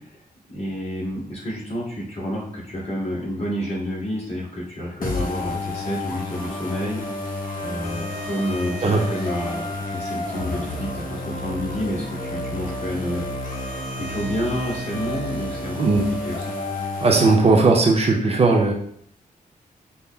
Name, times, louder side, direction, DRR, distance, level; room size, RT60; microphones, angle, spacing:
voice 1, 0.5-7.0 7.6-13.2 13.9-15.9 16.2-16.4, equal, 45° left, -6 dB, 1.7 m, -29 dB
sound 1, 5.0-17.4, left 2 dB, 70° left, 0.9 m, -30 dB
voice 2, 17.0-18.7, right 3 dB, 45° right, 1 dB, 0.6 m, -17 dB
5.5 x 2.0 x 3.4 m, 0.65 s
wide cardioid pair, 145°, 15 cm